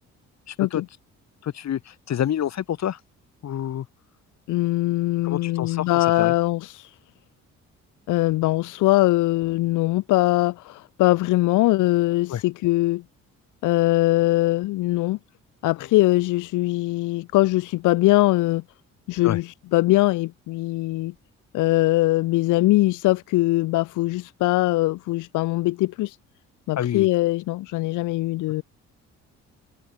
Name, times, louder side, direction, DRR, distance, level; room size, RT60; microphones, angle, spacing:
voice 1, 0.5-0.8 1.4-3.0 3.4-3.9 5.2-5.9 6.2-6.3 12.3-12.4 19.2-19.4 26.8-27.1, left 10 dB, 65° left, 2.9 m, -27 dB
voice 2, 4.5-6.9 8.1-13.0 13.6-15.2 15.6-18.6 19.1-21.1 21.5-26.2 26.7-28.6, left 19 dB, 85° left, 0.7 m, -21 dB
cardioid pair, 90°, 30 cm